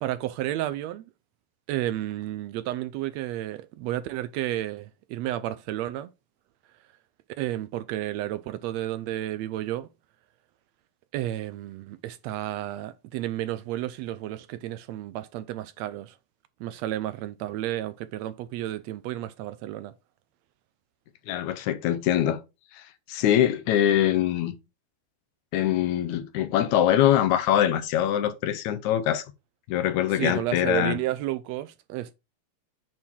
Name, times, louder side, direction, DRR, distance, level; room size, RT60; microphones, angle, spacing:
voice 1, 0.0-1.1 1.7-6.1 7.4-9.9 11.1-16.2 16.6-19.9 30.1-32.1, right 14 dB, 80° right, 1.6 m, -32 dB
voice 2, 21.3-22.4 22.8-22.9 23.1-24.5 25.5-29.2 29.7-31.0, left 11 dB, 85° left, 2.2 m, -23 dB
8.7 x 3.6 x 4.5 m
omnidirectional pair, 3.3 m